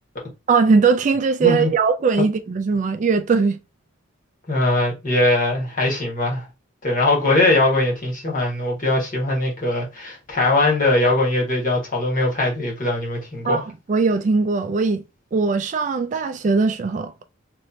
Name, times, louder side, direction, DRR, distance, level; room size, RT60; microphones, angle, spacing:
voice 1, 0.5-3.6 13.5-13.6 13.9-15.0 15.3-17.1, right 4 dB, 40° right, 0.3 m, -19 dB
voice 2, 4.5-6.5 6.8-13.6, left 2 dB, 45° left, 1.4 m, -21 dB
3.2 x 3.0 x 2.6 m
head